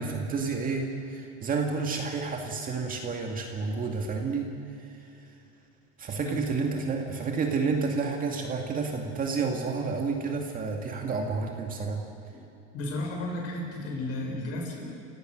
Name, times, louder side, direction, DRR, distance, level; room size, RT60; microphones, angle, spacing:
voice 1, 0.0-4.5 6.0-12.0, right 4 dB, 25° right, 2 dB, 2.2 m, -30 dB
voice 2, 12.7-14.9, left 1 dB, 45° left, 1 dB, 6.4 m, -33 dB
29.5 x 17.5 x 6.5 m, 2.9 s
supercardioid pair, 150°, 33 cm